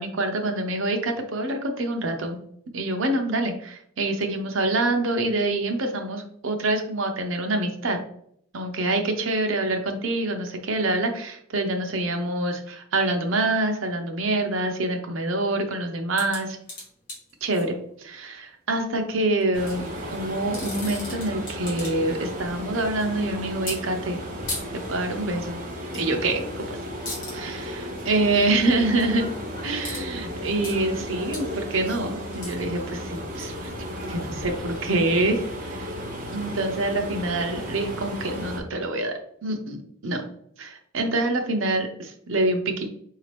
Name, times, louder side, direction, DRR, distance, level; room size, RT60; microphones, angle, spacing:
voice 1, 0.0-2.4 2.7-8.0 8.5-16.6 17.4-19.8 20.1-24.2 24.7-25.6 25.9-26.8 27.3-29.3 29.6-33.7 34.1-35.9 36.3-39.1 39.4-40.2 40.6-42.9, right 2 dB, 80° right, 4 dB, 0.7 m, -26 dB
sound 1, 16.2-17.7 19.4-19.8 20.4-22.2 22.4-23.0 23.7-23.8 24.5-24.6 25.9-26.1 26.4-26.6 27.1-27.4 29.8-30.0 30.3-30.8 31.3-31.4 31.8-34.4 35.0-35.1, left 2 dB, 40° left, 1.5 m, -37 dB
sound 2, 19.5-38.6, equal, 40° right, 0.9 m, -34 dB
5.0 x 2.8 x 3.3 m, 0.68 s
head